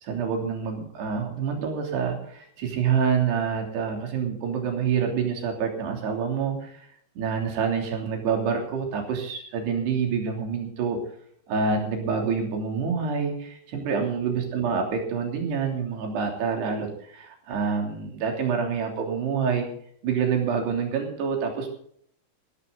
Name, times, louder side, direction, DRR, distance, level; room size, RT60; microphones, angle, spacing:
voice 1, 0.0-6.9 7.2-11.0 11.5-19.7 20.0-21.7, right 6 dB, 65° right, 2 dB, 5.2 m, -27 dB
16.5 x 15.0 x 4.0 m, 0.63 s
omnidirectional pair, 5.3 m